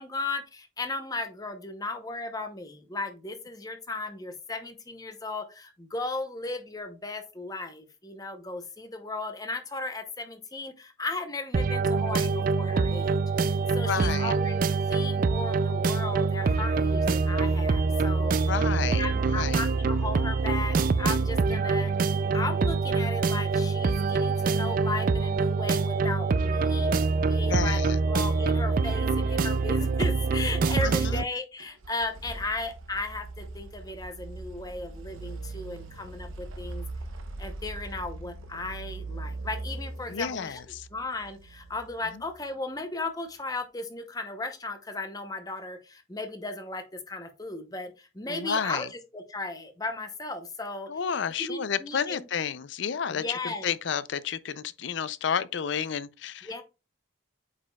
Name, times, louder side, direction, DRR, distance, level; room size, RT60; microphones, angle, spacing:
voice 1, 0.0-18.3 19.0-21.9 22.3-36.8 37.4-40.6 40.9-50.9 51.4-52.3 53.1-53.7 56.4-56.6, left 3 dB, 20° left, 0.8 m, -36 dB
sound 1, 11.5-31.2, right 4 dB, 45° right, 0.3 m, -25 dB
voice 2, 13.9-14.3 18.5-19.0 19.3-19.6 27.5-28.0 30.8-31.2 40.1-40.9 48.3-48.9 50.9-56.6, left 7 dB, 60° left, 0.4 m, -31 dB
sound 2, 31.6-42.4, right 2 dB, 85° right, 0.9 m, -41 dB
8.2 x 5.1 x 2.3 m
head